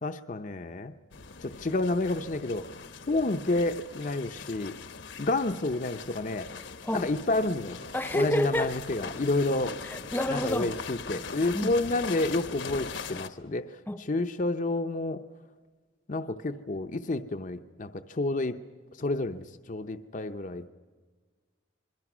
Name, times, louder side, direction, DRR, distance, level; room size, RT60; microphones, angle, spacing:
voice 1, 0.0-0.9 1.4-2.7 3.1-4.7 5.2-6.5 6.9-7.8 8.1-9.8 10.3-15.2 16.1-18.6 19.0-20.7, left 2 dB, 40° left, 0.7 m, -30 dB
sound 1, 1.1-13.3, left 5 dB, 70° left, 1.1 m, -41 dB
voice 2, 7.9-8.7 9.9-10.8 11.5-11.7 13.9-14.0, left 1 dB, 10° left, 0.8 m, -29 dB
27.0 x 22.0 x 6.2 m
head